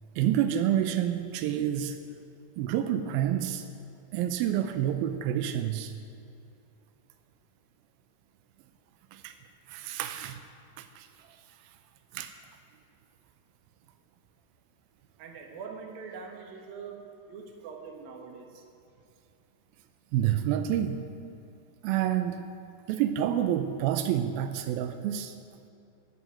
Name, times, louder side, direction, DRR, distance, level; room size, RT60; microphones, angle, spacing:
voice 1, 0.2-2.0 2.6-3.6 4.1-5.9 9.1-9.3 9.7-10.4 10.8-11.1 12.1-12.3 20.1-21.0 21.8-22.4 22.9-25.3, right 11 dB, 85° right, 8 dB, 2.2 m, -28 dB
voice 2, 15.2-18.6, right 5 dB, 65° right, 2 dB, 3.0 m, -43 dB
13.0 x 7.9 x 9.3 m, 2.7 s
omnidirectional pair, 4.8 m